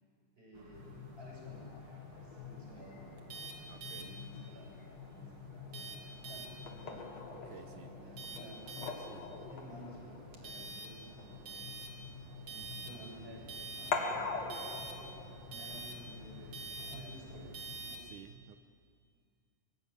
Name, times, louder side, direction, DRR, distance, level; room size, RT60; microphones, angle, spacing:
voice 1, 0.4-1.7 2.1-3.1 3.7-4.8 5.1-7.1 7.4-8.8 9.5-11.8 12.8-15.1 15.5-17.5 17.8-18.1, right 1 dB, 15° right, -2 dB, 7.2 m, -54 dB
sound 1, 0.5-18.0, right 2 dB, 40° right, 3.0 m, -49 dB
sound 2, 0.7-17.8, left 4 dB, 50° left, 3.1 m, -45 dB
voice 2, 3.7-4.1 7.3-7.9 9.0-9.3 12.5-12.9 16.9-17.2 18.1-18.6, right 10 dB, 70° right, 8 dB, 2.1 m, -54 dB
24.0 x 23.5 x 9.4 m, 2.2 s
omnidirectional pair, 4.4 m